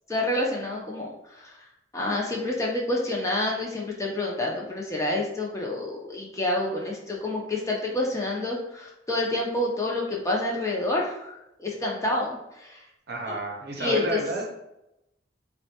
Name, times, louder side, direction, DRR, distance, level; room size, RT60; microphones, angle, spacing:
voice 1, 0.1-1.6 1.9-12.8 13.8-14.2, left 2 dB, 15° left, -2 dB, 0.5 m, -28 dB
voice 2, 13.1-14.4, right 2 dB, 55° right, 0 dB, 0.6 m, -30 dB
3.6 x 2.1 x 2.8 m, 0.88 s
head